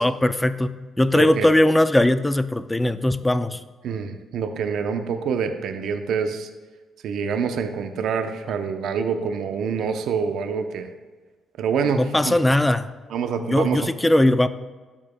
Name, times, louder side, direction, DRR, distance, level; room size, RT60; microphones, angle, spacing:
voice 1, 0.0-3.6 12.0-12.9 13.5-14.5, left 1 dB, 10° left, 13 dB, 0.4 m, -19 dB
voice 2, 1.1-1.5 3.8-6.5 7.0-10.9 11.6-12.3 13.1-13.8, right 6 dB, 75° right, 7 dB, 0.6 m, -26 dB
12.0 x 7.2 x 2.2 m, 1.3 s
cardioid pair, 90°, 0 cm